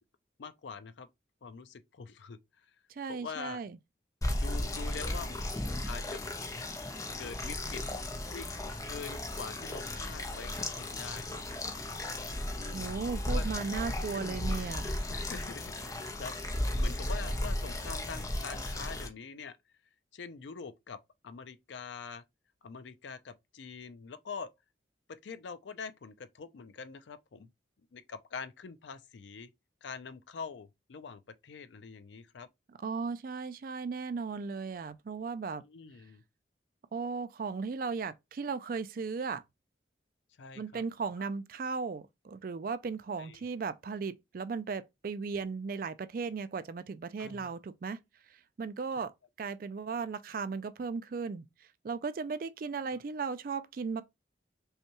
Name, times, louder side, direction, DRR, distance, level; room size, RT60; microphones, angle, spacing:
voice 1, 0.4-1.1 1.4-2.4 3.1-3.6 4.4-5.4 5.9-6.2 7.2-7.8 8.3-8.5 8.9-11.4 12.5-13.0 13.3-13.5 14.1-14.4 15.1-16.4 16.7-19.6 20.1-22.2 22.6-24.5 25.1-27.5 27.9-29.5 29.8-32.5 35.6-36.2 40.4-40.8 41.2-41.3 43.2-43.5 47.2-47.5 52.9-53.0, left 5 dB, 75° left, 0.5 m, -44 dB
voice 2, 2.9-3.8 12.7-14.9 32.8-35.6 36.9-39.4 40.6-48.0 48.6-49.1 49.4-51.4 51.8-54.0, right 5 dB, 50° right, 0.3 m, -36 dB
sound 1, 4.2-19.1, left 1 dB, 20° left, 0.5 m, -35 dB
5.5 x 2.3 x 2.9 m
head